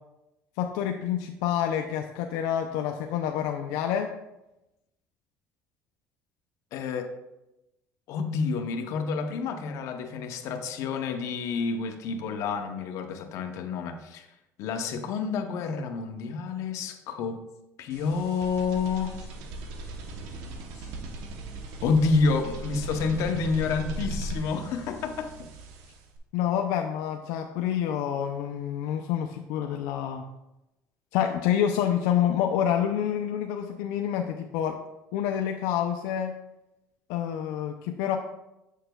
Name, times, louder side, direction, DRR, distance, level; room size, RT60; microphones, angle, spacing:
voice 1, 0.6-4.1 26.3-30.3 31.1-34.8 35.1-36.3 37.1-38.2, left 9 dB, 85° left, 4 dB, 0.4 m, -28 dB
voice 2, 6.7-7.1 8.1-14.3 14.6-17.4 17.8-19.1 21.8-25.5, left 4 dB, 65° left, 6 dB, 0.8 m, -29 dB
sound 1, 17.9-26.2, right 2 dB, 85° right, 0.8 m, -38 dB
7.6 x 6.5 x 2.2 m, 0.94 s
cardioid pair, 125°, 6 cm